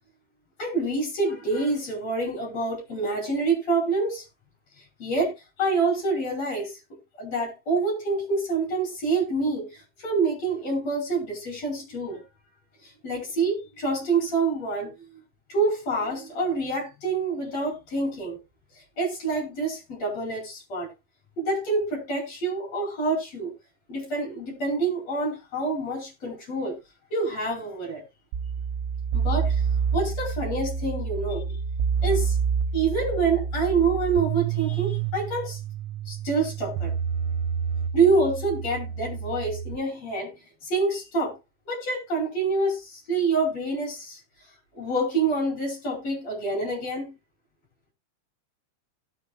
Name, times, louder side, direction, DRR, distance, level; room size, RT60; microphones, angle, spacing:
voice 1, 0.6-4.2 5.0-5.3 5.6-6.8 7.1-9.7 10.0-12.2 13.0-14.9 15.5-18.4 19.0-20.9 21.4-23.5 23.9-26.8 27.1-28.0 29.1-29.6 29.9-31.6 32.0-32.4 32.7-35.6 36.1-36.9 37.9-40.3 40.6-41.4 41.7-44.2 44.8-47.1, right 3 dB, 30° left, 5.3 m, -26 dB
sound 1, 28.3-39.8, right 6 dB, 85° right, 3.3 m, -28 dB
17.0 x 7.4 x 2.3 m
omnidirectional pair, 6.0 m